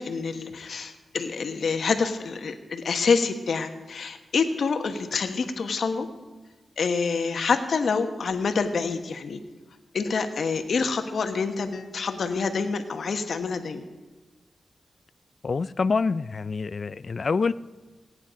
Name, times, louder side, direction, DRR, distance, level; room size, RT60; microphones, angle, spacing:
voice 1, 0.0-6.1 6.8-9.4 9.9-13.8, left 5 dB, 70° left, 7 dB, 1.2 m, -27 dB
voice 2, 15.4-17.5, left 4 dB, 50° left, 16 dB, 0.3 m, -26 dB
17.0 x 9.6 x 5.1 m, 1.2 s
cardioid pair, 75°, 0 cm